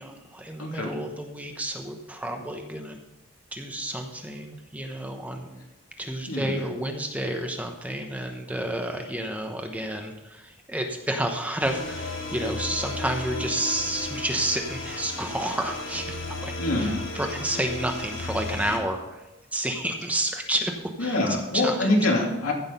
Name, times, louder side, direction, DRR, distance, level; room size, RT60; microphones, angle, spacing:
voice 1, 0.0-3.0 3.5-5.6 6.0-19.2 19.5-21.2 21.5-22.1, right 1 dB, 5° right, 4 dB, 0.9 m, -30 dB
voice 2, 0.6-0.9 6.3-6.6 16.6-17.0 21.0-22.5, left 2 dB, 90° left, -1 dB, 2.9 m, -25 dB
sound 1, 11.6-18.8, left 2 dB, 60° left, 2.9 m, -34 dB
15.0 x 6.3 x 5.4 m, 1.0 s
head